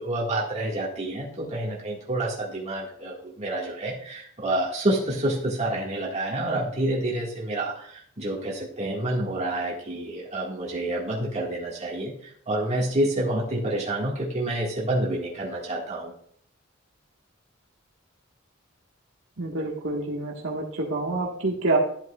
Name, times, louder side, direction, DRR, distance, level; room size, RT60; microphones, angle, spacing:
voice 1, 0.0-16.1, right 1 dB, 35° right, -3 dB, 1.7 m, -28 dB
voice 2, 19.4-21.8, right 2 dB, 70° right, -1 dB, 1.5 m, -27 dB
12.5 x 8.1 x 2.4 m, 0.62 s
head